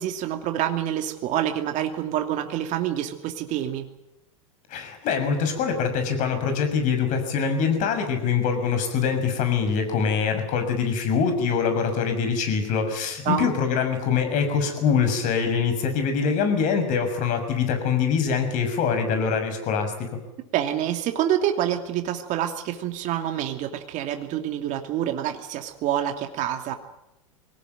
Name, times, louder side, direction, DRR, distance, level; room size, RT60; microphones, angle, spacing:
voice 1, 0.0-3.9 13.2-13.5 20.5-26.7, right 11 dB, 45° right, 5 dB, 2.7 m, -27 dB
voice 2, 4.7-20.2, left 6 dB, 50° left, 7 dB, 6.5 m, -24 dB
24.0 x 18.5 x 9.3 m, 0.89 s
hypercardioid pair, 105°, 17 cm